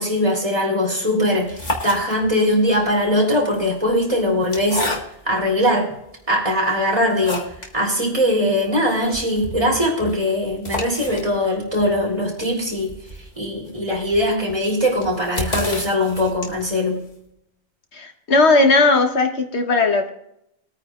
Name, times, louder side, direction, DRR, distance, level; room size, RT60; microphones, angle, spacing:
voice 1, 0.0-4.8 5.2-5.9 6.3-12.9 13.4-17.0, left 1 dB, 30° right, -2 dB, 3.6 m, -21 dB
sound 1, 1.3-2.5 3.4-5.4 6.1-6.2 6.6-7.8 8.1-8.2 8.5-8.6 8.9-16.8, left 1 dB, 40° left, 1.9 m, -31 dB
voice 2, 17.9-20.1, left 3 dB, 75° left, 4 dB, 1.5 m, -17 dB
21.5 x 9.3 x 2.5 m, 0.78 s
omnidirectional pair, 1.1 m